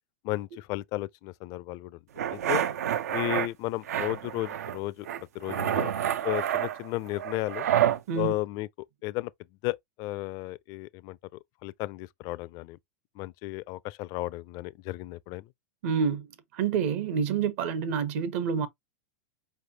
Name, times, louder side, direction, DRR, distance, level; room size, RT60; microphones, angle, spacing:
voice 1, 0.2-2.0 2.3-2.6 3.1-5.1 5.3-5.9 6.2-7.7 8.2-8.7 9.0-9.3 9.6-11.2 11.6-12.8 13.2-15.5, left 17 dB, 50° left, 0.4 m, -34 dB
sound 1, 2.2-3.5 3.9-4.8 5.1-8.0, right 10 dB, 80° right, 0.5 m, -28 dB
voice 2, 15.8-16.3 16.5-18.7, right 7 dB, 60° right, 1.0 m, -28 dB
4.7 x 3.3 x 2.8 m
hypercardioid pair, 110°, 8 cm